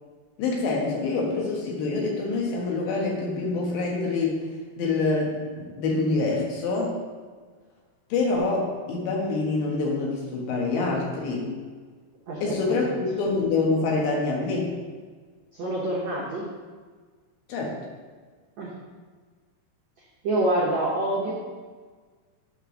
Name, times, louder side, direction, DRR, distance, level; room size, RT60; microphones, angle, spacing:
voice 1, 0.4-4.5 4.8-6.9 8.1-11.5 12.4-14.7 17.5-17.8, left 3 dB, 90° left, -1 dB, 3.6 m, -26 dB
voice 2, 15.5-16.4 18.6-18.7 20.2-21.3, right 1 dB, 85° right, -5 dB, 1.5 m, -26 dB
8.9 x 3.4 x 6.1 m, 1.5 s
omnidirectional pair, 4.9 m